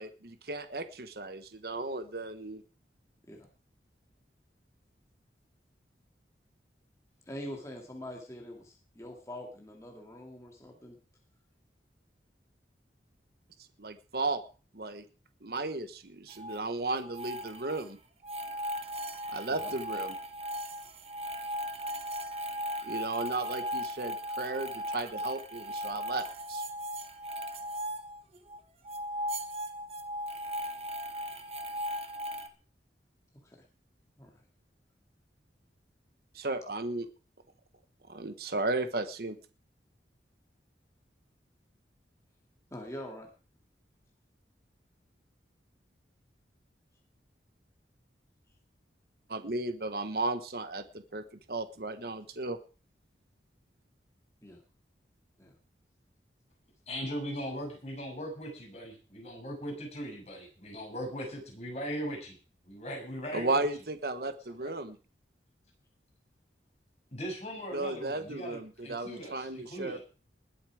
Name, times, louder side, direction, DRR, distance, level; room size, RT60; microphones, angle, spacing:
voice 1, 0.0-2.6 13.8-14.4 14.7-15.0 15.4-18.0 19.3-20.2 22.8-26.6 36.3-37.1 38.1-39.4 49.3-52.6 63.3-65.0 67.7-70.0, right 2 dB, 60° right, 9 dB, 1.2 m, -35 dB
voice 2, 7.3-11.0 19.5-19.7 33.4-33.6 34.2-34.3 42.7-43.3 54.4-54.6 55.4-55.5, left 1 dB, 15° left, 0 dB, 2.3 m, -44 dB
sound 1, 16.3-16.6 17.0-17.9 18.2-28.6 28.8-32.5, equal, 35° right, 1.4 m, -37 dB
voice 3, 56.9-62.4 62.6-63.7 64.6-64.7 67.1-70.0, equal, 35° left, 0 dB, 7.0 m, -39 dB
20.0 x 8.4 x 4.9 m, 0.36 s
head